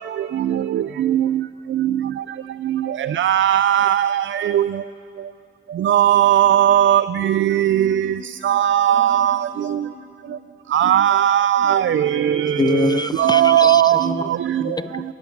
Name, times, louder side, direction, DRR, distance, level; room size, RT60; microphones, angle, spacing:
voice 1, 3.2-4.1 4.5-4.6 5.9-7.0 8.5-9.4 10.7-11.8 13.2-14.0, right 11 dB, 85° right, 0.4 m, -16 dB
voice 2, 7.6-8.5 8.9-10.3 11.6-12.2 12.5-12.6, left 1 dB, 70° right, 6.3 m, -41 dB
voice 3, 12.4-14.2 14.6-15.0, left 3 dB, 20° left, 0.4 m, -24 dB
28.5 x 15.0 x 7.2 m
wide cardioid pair, 140°, 19 cm